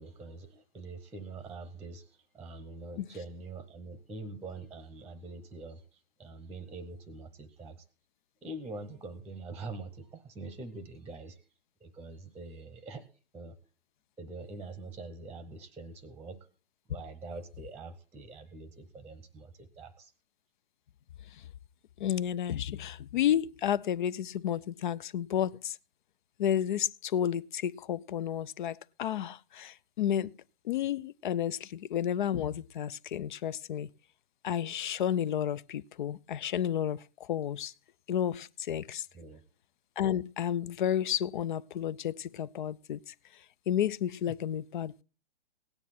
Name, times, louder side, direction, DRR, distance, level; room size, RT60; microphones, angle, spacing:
voice 1, 0.0-2.1 2.3-7.8 8.4-11.4 11.8-13.0 13.3-13.6 14.2-16.4 16.9-20.1 39.1-39.4, right 3 dB, 5° right, 0.8 m, -44 dB
voice 2, 22.0-25.8 26.4-30.3 30.6-33.9 34.4-37.7 38.1-39.1 40.0-43.1 43.7-45.0, left 10 dB, 55° left, 0.5 m, -31 dB
17.0 x 9.7 x 4.2 m
hypercardioid pair, 135°, 29 cm